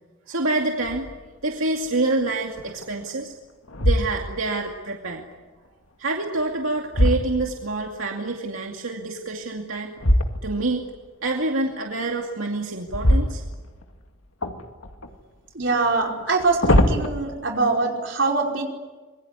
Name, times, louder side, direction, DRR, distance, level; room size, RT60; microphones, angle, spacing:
voice 1, 0.3-1.1 1.4-3.3 3.8-5.3 6.0-9.9 10.4-10.8 11.2-13.4, right 2 dB, 85° right, 1 dB, 2.4 m, -27 dB
sound 1, 0.9-1.3 1.8-1.9 2.6-3.1 3.7-4.6 6.2-7.9 10.0-10.8 12.9-14.0 14.4-15.2 16.2-17.1, left 1 dB, 90° left, 2.3 m, -23 dB
voice 2, 15.5-18.6, right 3 dB, 60° right, 1 dB, 5.2 m, -23 dB
26.5 x 22.5 x 9.8 m, 1.3 s
head